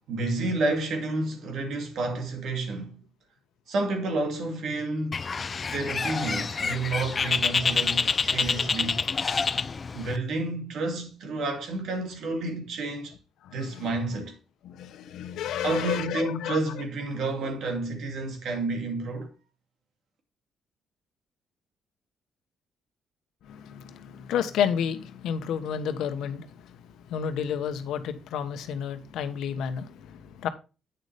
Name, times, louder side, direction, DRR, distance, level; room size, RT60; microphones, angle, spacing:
voice 1, 0.1-3.0 3.7-5.2 5.7-9.0 9.9-13.1 13.5-14.4 15.6-19.3, right 2 dB, 75° right, 2.4 m, -30 dB
Bird, 5.1-10.2, left 5 dB, 35° left, 0.5 m, -27 dB
voice 2, 13.4-14.2 14.6-16.6 23.4-30.5, left 8 dB, 80° left, 1.1 m, -31 dB
8.9 x 6.7 x 3.3 m
cardioid pair, 90°, 0 cm